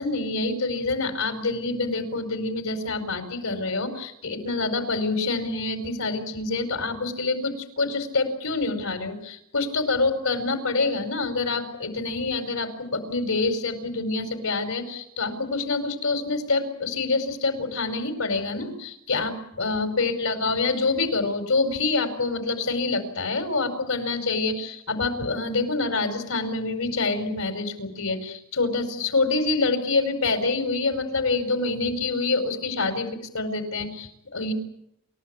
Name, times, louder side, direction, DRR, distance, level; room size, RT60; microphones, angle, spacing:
voice 1, 0.0-33.1 33.3-34.5, left 3 dB, 70° left, 8 dB, 5.2 m, -26 dB
29.0 x 15.0 x 9.8 m, 0.75 s
head